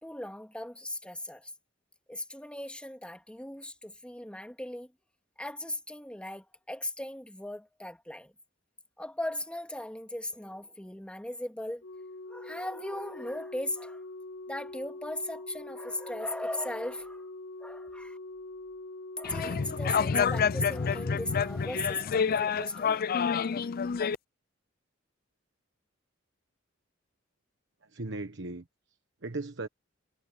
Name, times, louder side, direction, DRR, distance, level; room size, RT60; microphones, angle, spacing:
voice 1, 0.0-1.5 2.1-4.9 5.4-8.3 9.0-11.8 12.3-14.0 14.5-17.3 17.6-18.2 19.2-23.0, left 1 dB, 5° left, 2.4 m, -38 dB
Organ, 11.8-22.7 23.8-24.0, left 2 dB, 75° left, 2.2 m, -44 dB
sound 1, 19.2-24.1, left 6 dB, 50° left, 0.5 m, -28 dB
voice 2, 27.8-29.7, right 2 dB, 65° right, 1.3 m, -38 dB
head